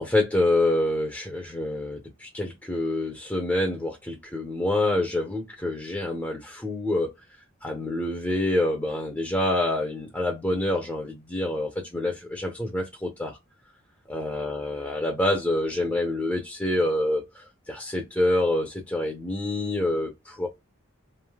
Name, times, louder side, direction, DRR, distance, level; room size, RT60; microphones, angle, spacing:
voice 1, 0.0-7.1 7.6-13.4 14.1-20.5, left 1 dB, 10° left, 0.6 m, -27 dB
3.2 x 2.6 x 2.2 m
head